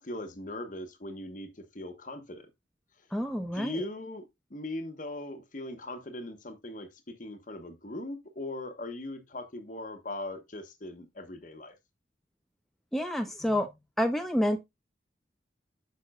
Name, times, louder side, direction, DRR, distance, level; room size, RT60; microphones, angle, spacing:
voice 1, 0.0-2.5 3.5-11.7, left 1 dB, 40° left, 1.1 m, -40 dB
voice 2, 3.1-3.8 12.9-13.7 14.0-14.6, equal, ahead, 0.5 m, -28 dB
8.8 x 5.9 x 2.3 m
head